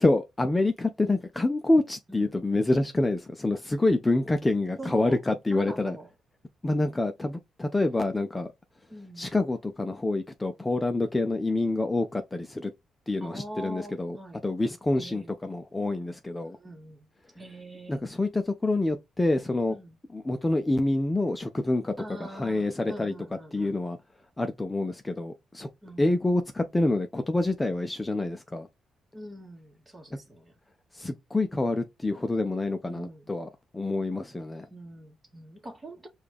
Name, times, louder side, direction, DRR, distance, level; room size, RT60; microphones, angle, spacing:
voice 1, 0.0-6.0 6.6-8.5 9.2-12.7 13.1-14.2 14.4-16.6 17.9-19.8 20.1-21.9 22.2-23.1 23.5-24.0 24.4-25.7 26.0-28.7 30.9-34.7, left 2 dB, 15° left, 0.5 m, -27 dB
voice 2, 4.8-5.2 5.5-6.1 8.9-9.3 13.2-14.4 14.9-15.4 16.5-17.1 17.4-18.0 19.7-20.0 22.0-23.8 25.8-26.1 29.1-30.5 32.9-33.3 34.6-36.1, right 1 dB, 20° right, 1.3 m, -43 dB
4.9 x 2.4 x 3.5 m
cardioid pair, 90°, 0 cm